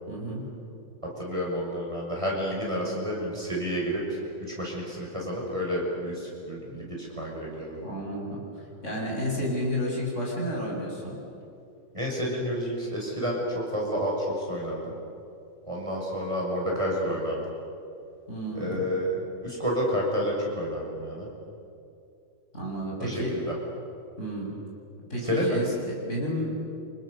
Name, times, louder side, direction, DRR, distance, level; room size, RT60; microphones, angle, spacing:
voice 1, 0.1-0.5 7.8-11.2 18.3-18.8 22.5-23.3 24.2-24.5 25.1-26.5, equal, 40° left, -4 dB, 7.9 m, -31 dB
voice 2, 1.2-4.2 4.5-7.8 11.9-14.9 15.6-17.4 18.5-21.3 23.0-23.5 25.2-25.6, equal, 15° right, -3 dB, 6.4 m, -30 dB
30.0 x 27.5 x 6.9 m, 2.6 s
omnidirectional pair, 2.0 m